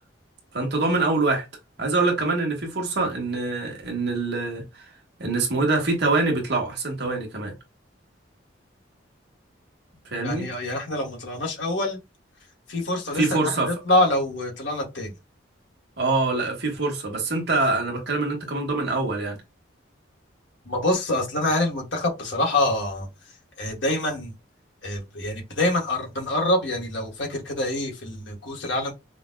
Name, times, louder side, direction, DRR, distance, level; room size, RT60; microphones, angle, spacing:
voice 1, 0.5-1.4 1.8-4.8 5.2-7.5 10.1-10.5 13.1-13.7 16.0-19.4, right 3 dB, 60° right, 1.3 m, -24 dB
voice 2, 10.2-12.0 12.7-15.1 20.6-23.1 23.6-24.3 24.8-28.9, left 1 dB, 75° left, 1.5 m, -26 dB
5.0 x 2.3 x 2.2 m
head